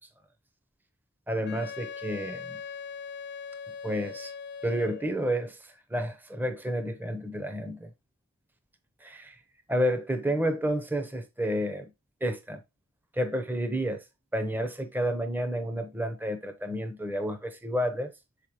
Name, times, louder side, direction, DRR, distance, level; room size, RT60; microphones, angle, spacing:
voice 1, 1.3-2.6 3.8-4.3 4.6-5.6 5.9-7.9 9.0-9.4 9.7-11.9 12.2-12.6 13.1-14.0 14.3-18.1, equal, 10° right, 0.7 m, -30 dB
Wind instrument woodwind instrument, 1.4-5.2, left 6 dB, 50° left, 0.6 m, -40 dB
6.7 x 5.0 x 2.9 m
head